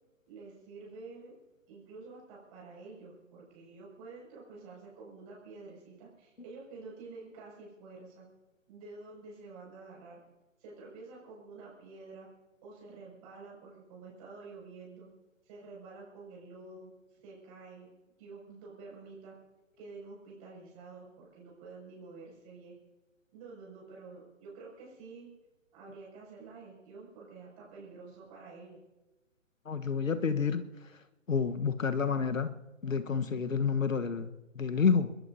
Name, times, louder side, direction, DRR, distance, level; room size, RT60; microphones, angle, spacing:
voice 1, 0.3-1.3 1.7-8.3 8.7-10.2 10.6-12.3 12.6-15.1 15.4-16.9 17.2-17.9 18.2-19.3 19.8-22.7 23.3-25.3 25.7-28.8, right 3 dB, 30° right, -4 dB, 6.5 m, -49 dB
voice 2, 29.7-30.6 31.3-32.5 32.8-35.1, left 6 dB, 80° left, 10 dB, 1.3 m, -29 dB
24.0 x 21.5 x 2.7 m, 1.1 s
figure-of-eight pair, 140°, 39 cm